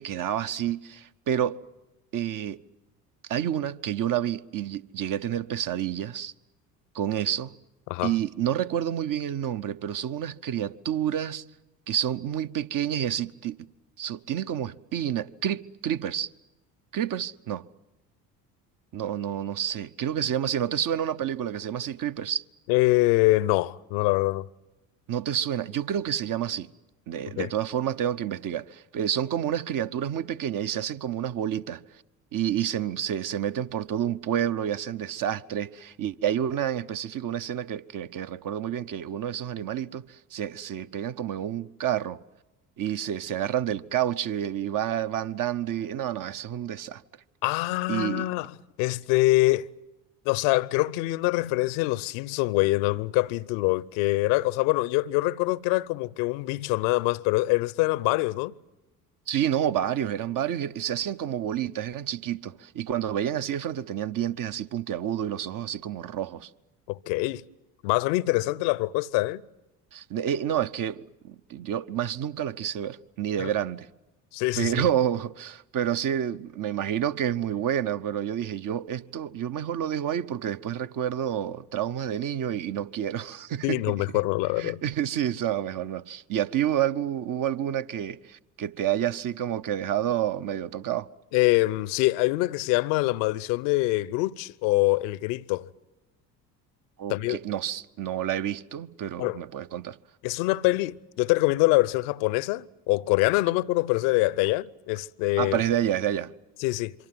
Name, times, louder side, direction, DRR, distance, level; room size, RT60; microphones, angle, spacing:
voice 1, 0.0-1.6 2.1-2.6 3.3-6.3 6.9-7.5 8.0-11.4 11.9-13.6 14.0-16.3 16.9-17.6 18.9-22.4 25.1-26.7 27.1-31.8 32.3-42.2 42.8-47.0 47.9-48.3 59.3-66.5 69.9-73.9 74.6-83.9 84.6-91.1 97.0-100.0 105.4-106.3, right 10 dB, 40° right, 0.9 m, -29 dB
voice 2, 22.7-24.4 27.4-27.5 47.4-48.5 48.8-49.7 50.2-58.5 66.9-67.4 67.8-69.4 73.4-73.5 74.3-74.8 83.6-84.8 91.3-95.7 97.1-97.4 99.2-99.4 100.2-105.6 106.6-106.9, left 20 dB, 60° left, 0.8 m, -24 dB
26.0 x 24.5 x 7.8 m
figure-of-eight pair, 60°, 49 cm